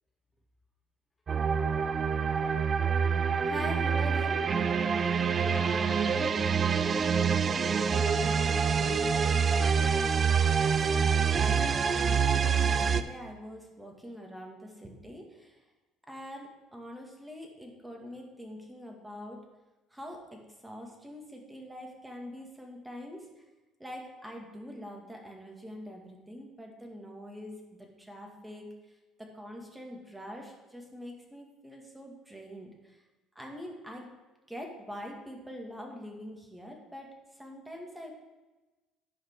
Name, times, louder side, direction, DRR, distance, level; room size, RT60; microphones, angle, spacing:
sound 1, 1.3-13.0, right 6 dB, 40° right, 0.5 m, -26 dB
voice 1, 3.4-4.4 10.7-15.6 16.1-19.4 19.9-23.3 23.8-27.5 27.8-28.7 29.2-33.0 33.4-34.1 34.5-38.1, equal, 10° right, 1 dB, 2.1 m, -44 dB
voice 2, 5.4-9.2, equal, 20° left, -1 dB, 1.2 m, -44 dB
10.5 x 5.1 x 4.7 m, 1.1 s
supercardioid pair, 75°, 0 cm